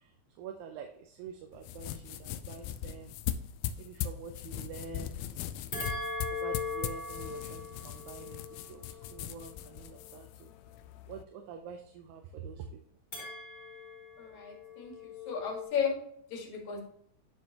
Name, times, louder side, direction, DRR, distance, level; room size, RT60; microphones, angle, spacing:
voice 1, 0.4-3.1 3.8-5.2 6.3-8.4 8.7-8.8 9.1-10.5 11.1-12.8, right 6 dB, 80° right, 4 dB, 2.1 m, -46 dB
sound 1, 1.5-11.2, left 10 dB, 90° left, 2.0 m, -40 dB
sound 2, 5.7-10.2 13.1-15.7, left 4 dB, 40° left, 3.2 m, -40 dB
voice 2, 14.2-16.0 16.3-16.8, left 7 dB, 75° left, 1 dB, 3.0 m, -34 dB
9.5 x 4.5 x 2.8 m, 0.65 s
omnidirectional pair, 3.4 m